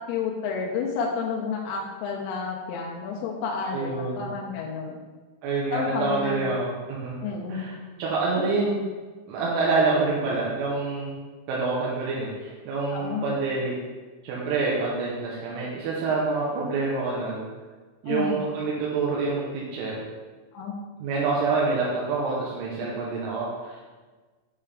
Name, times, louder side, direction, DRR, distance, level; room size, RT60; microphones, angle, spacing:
voice 1, 0.1-5.0 5.7-6.5 7.2-7.7 8.4-8.5 12.9-13.3 18.1-18.4 20.5-20.8, left 5 dB, 85° left, -1 dB, 3.1 m, -30 dB
voice 2, 3.7-4.3 5.4-8.8 9.3-11.1 11.5-13.7 14.2-17.4 18.0-20.0 21.0-23.8, right 3 dB, 85° right, -5 dB, 3.2 m, -27 dB
8.8 x 3.4 x 3.5 m, 1.3 s
omnidirectional pair, 5.8 m